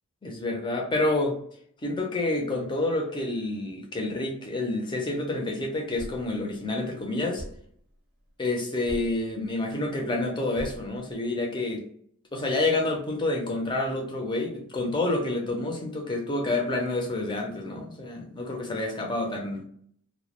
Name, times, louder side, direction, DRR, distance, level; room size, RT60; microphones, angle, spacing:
voice 1, 0.2-1.4 1.8-7.4 8.4-11.8 12.3-19.6, left 2 dB, 20° left, 2 dB, 0.4 m, -28 dB
Thump thud, 6.0-6.4 7.4-7.8 8.9-9.3 10.6-11.0, equal, 45° right, 0.5 m, -39 dB
2.1 x 2.0 x 2.8 m, 0.64 s
head